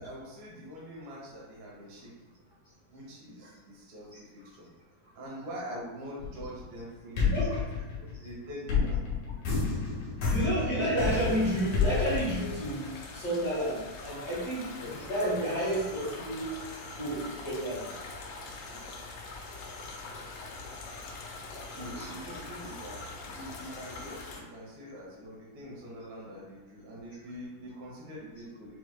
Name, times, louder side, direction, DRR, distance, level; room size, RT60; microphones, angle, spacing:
voice 1, 0.0-2.3 2.9-4.7 5.2-7.6 8.0-9.0 10.7-10.9 14.8-15.0 21.7-28.8, equal, 80° right, -5 dB, 3.0 m, -44 dB
sound 1, 6.2-6.8 7.2-13.0, left 5 dB, 65° left, 2.2 m, -30 dB
voice 2, 7.2-7.6 10.3-12.8 13.1-14.7 15.1-16.4 16.9-17.8 21.9-22.1, right 1 dB, 50° left, -12 dB, 1.2 m, -30 dB
sound 2, 11.1-24.4, left 3 dB, 90° left, 2.5 m, -43 dB
6.9 x 3.0 x 2.2 m, 1.2 s
omnidirectional pair, 4.2 m